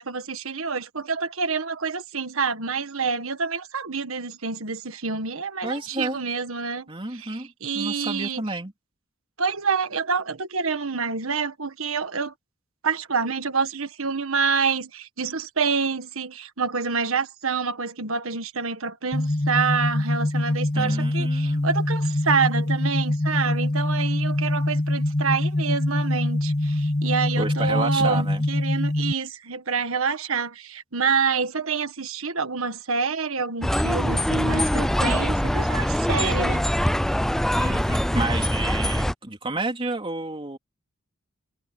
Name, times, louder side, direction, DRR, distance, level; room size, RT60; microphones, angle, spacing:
voice 1, 0.0-6.9 7.1-8.4 9.4-12.3 12.8-36.7, right 5 dB, 70° right, 1.6 m, -27 dB
voice 2, 5.6-6.2 6.9-8.7 20.7-21.7 27.4-28.5 37.6-40.6, right 2 dB, 25° right, 3.5 m, -31 dB
sound 1, 19.1-29.1, left 1 dB, 35° left, 1.6 m, -24 dB
sound 2, 33.6-39.1, equal, ahead, 0.4 m, -23 dB
head